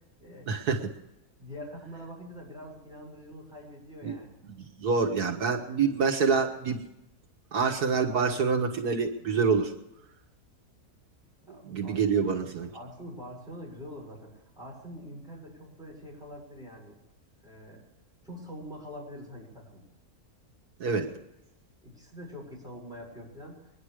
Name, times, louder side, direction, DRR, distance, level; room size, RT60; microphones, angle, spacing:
voice 1, 0.5-0.9 4.0-4.2 4.4-6.8 7.5-9.7 11.6-12.7 20.8-21.1, right 5 dB, 80° right, 1 dB, 2.1 m, -26 dB
voice 2, 1.4-4.4 11.5-12.3 12.7-17.0 17.4-17.8 18.2-19.8 21.8-23.7, equal, ahead, -4 dB, 7.0 m, -44 dB
23.5 x 11.0 x 4.9 m, 0.92 s
omnidirectional pair, 1.6 m